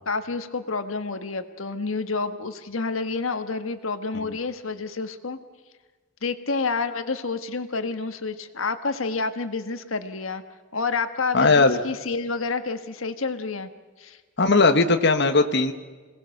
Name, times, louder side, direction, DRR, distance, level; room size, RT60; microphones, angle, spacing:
voice 1, 0.0-5.4 6.2-10.4 10.7-13.7 14.0-14.2, left 4 dB, 85° left, 9 dB, 1.4 m, -29 dB
voice 2, 11.3-11.8 14.4-15.7, left 3 dB, 60° left, 6 dB, 1.3 m, -18 dB
27.5 x 18.5 x 6.6 m, 1.4 s
head